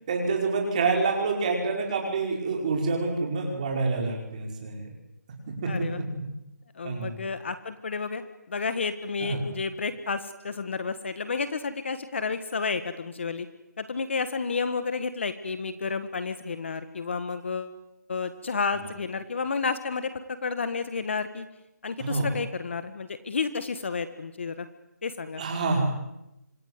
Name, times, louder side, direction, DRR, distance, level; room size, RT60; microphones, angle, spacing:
voice 1, 0.1-4.8 5.6-5.7 6.8-7.1 9.2-9.4 22.0-22.3 25.4-25.8, right 4 dB, 25° right, 1 dB, 5.2 m, -27 dB
voice 2, 5.7-6.0 6.7-8.2 8.5-13.5 13.8-17.8 18.1-21.5 21.8-24.7 25.0-25.4, left 5 dB, 40° left, 11 dB, 1.5 m, -31 dB
26.0 x 20.5 x 9.6 m, 0.89 s
hypercardioid pair, 175°, 9 cm